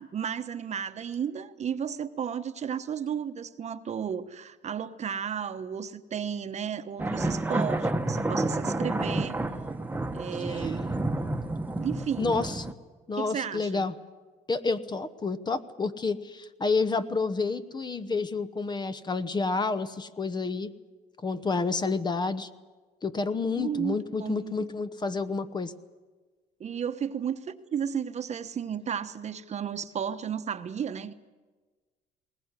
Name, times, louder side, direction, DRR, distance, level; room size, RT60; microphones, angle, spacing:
voice 1, 0.0-9.4 10.1-10.9 11.7-12.4 13.1-13.9 23.5-24.7 26.6-31.1, right 8 dB, 40° right, 10 dB, 1.1 m, -33 dB
sound 1, 7.0-12.7, right 2 dB, 10° right, 1.2 m, -30 dB
voice 2, 10.4-10.7 12.2-12.7 13.1-13.9 14.5-20.7 21.2-22.5 23.0-25.7, left 4 dB, 25° left, 12 dB, 1.0 m, -29 dB
20.5 x 18.5 x 9.8 m, 1.3 s
cardioid pair, 110°, 17 cm